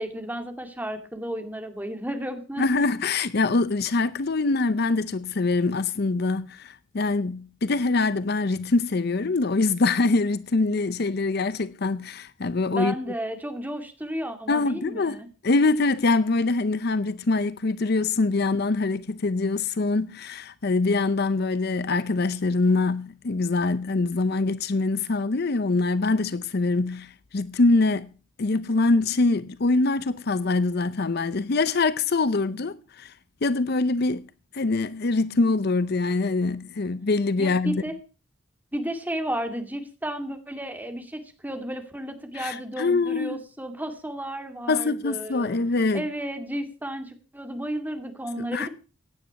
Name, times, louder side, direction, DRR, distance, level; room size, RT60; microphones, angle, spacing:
voice 1, 0.0-2.8 12.7-15.3 37.4-37.9 38.7-45.6 45.9-48.7, right 1 dB, 10° right, 2.2 m, -33 dB
voice 2, 2.6-12.9 14.5-28.1 28.4-33.1 33.4-34.2 34.5-37.8 42.3-43.4 44.7-46.0 48.4-48.7, left 3 dB, 50° left, 0.6 m, -24 dB
16.0 x 10.0 x 5.8 m
head